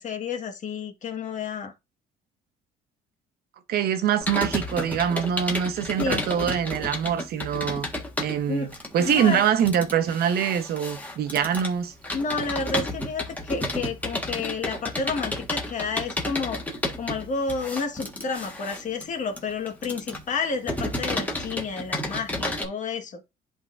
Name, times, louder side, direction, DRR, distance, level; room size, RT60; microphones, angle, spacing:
voice 1, 0.0-1.7 6.0-6.3 8.5-8.7 9.1-9.5 12.1-16.6 17.0-23.2, left 4 dB, 45° left, 1.8 m, -30 dB
voice 2, 3.7-7.9 8.2-8.7 8.9-11.9, right 9 dB, 65° right, 1.1 m, -24 dB
Computer keyboard, 4.2-22.7, left 1 dB, 10° left, 1.6 m, -32 dB
11.0 x 3.8 x 2.7 m
cardioid pair, 110°, 17 cm